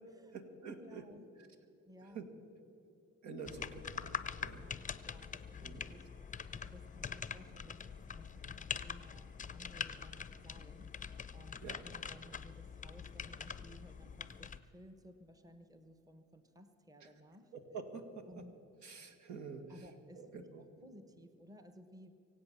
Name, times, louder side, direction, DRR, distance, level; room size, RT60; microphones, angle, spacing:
voice 1, 0.3-1.1 1.4-1.5 2.0-2.3 3.2-4.7 5.6-5.8 11.6-11.8 17.0-17.1 17.5-18.4 18.8-19.9 20.1-20.6, right 5 dB, 70° right, 4 dB, 1.9 m, -48 dB
voice 2, 0.8-1.3 1.9-2.2 4.5-8.5 8.8-11.1 11.3-17.5 18.3-18.6 19.7-20.4 20.8-22.1, equal, 10° right, 9 dB, 1.1 m, -58 dB
sound 1, 3.4-14.6, left 6 dB, 25° left, 0.6 m, -44 dB
24.0 x 8.3 x 7.0 m, 2.8 s
cardioid pair, 90°, 30 cm